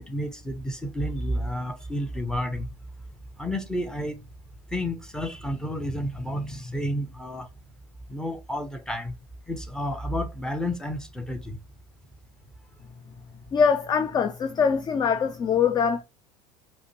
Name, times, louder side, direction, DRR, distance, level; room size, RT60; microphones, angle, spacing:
voice 1, 0.1-2.7 3.4-4.2 4.7-7.5 8.1-9.2 9.5-11.6, equal, 5° left, 0.9 m, -30 dB
voice 2, 13.5-16.0, left 6 dB, 20° left, 0.4 m, -23 dB
4.9 x 2.2 x 2.9 m
figure-of-eight pair, 70°, 20 cm